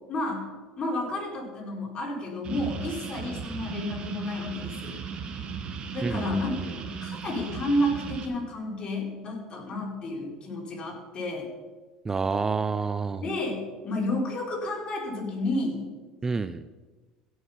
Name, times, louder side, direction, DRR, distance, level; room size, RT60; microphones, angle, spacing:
voice 1, 0.1-0.5 0.8-5.0 5.9-11.5 13.2-15.9, left 1 dB, 40° left, -1 dB, 4.3 m, -31 dB
sound 1, 2.4-8.3, right 6 dB, 45° right, 1.7 m, -37 dB
voice 2, 6.0-6.7 12.0-13.2 16.2-16.6, right 4 dB, 20° right, 13 dB, 0.5 m, -29 dB
16.5 x 6.4 x 5.6 m, 1.3 s
hypercardioid pair, 80°, 2 cm